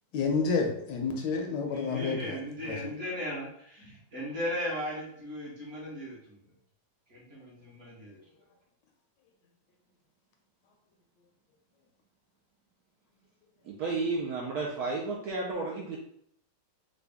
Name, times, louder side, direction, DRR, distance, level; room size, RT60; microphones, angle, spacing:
voice 1, 0.1-2.4 2.7-2.8, left 4 dB, 75° left, 3 dB, 1.2 m, -29 dB
voice 2, 1.7-6.4 7.1-8.2, equal, 45° right, -6 dB, 1.3 m, -37 dB
voice 3, 13.6-16.0, right 3 dB, 70° right, -2 dB, 0.9 m, -32 dB
3.8 x 2.2 x 3.4 m, 0.69 s
omnidirectional pair, 2.0 m